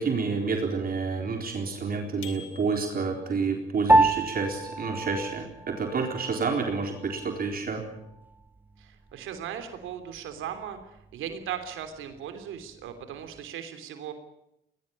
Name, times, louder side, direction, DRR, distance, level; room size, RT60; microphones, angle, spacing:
voice 1, 0.0-7.8, right 4 dB, 50° right, 3 dB, 4.1 m, -29 dB
sound 1, 2.2-3.3, left 8 dB, 85° left, 3.4 m, -46 dB
Piano, 3.9-13.5, right 2 dB, 10° right, 1.5 m, -30 dB
voice 2, 8.8-14.1, right 9 dB, 85° right, 8 dB, 3.2 m, -38 dB
21.0 x 20.0 x 8.7 m, 0.85 s
cardioid pair, 90°, 20 cm